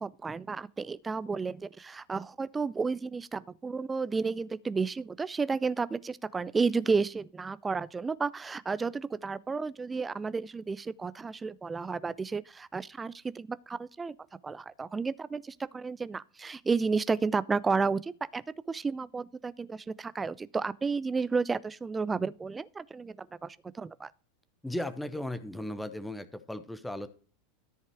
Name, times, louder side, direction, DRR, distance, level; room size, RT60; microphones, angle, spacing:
voice 1, 0.0-14.2 14.4-24.1, right 4 dB, 15° right, 0.5 m, -32 dB
voice 2, 24.6-27.1, left 1 dB, 5° left, 1.1 m, -36 dB
13.5 x 5.5 x 4.7 m
figure-of-eight pair, 80°, 0 cm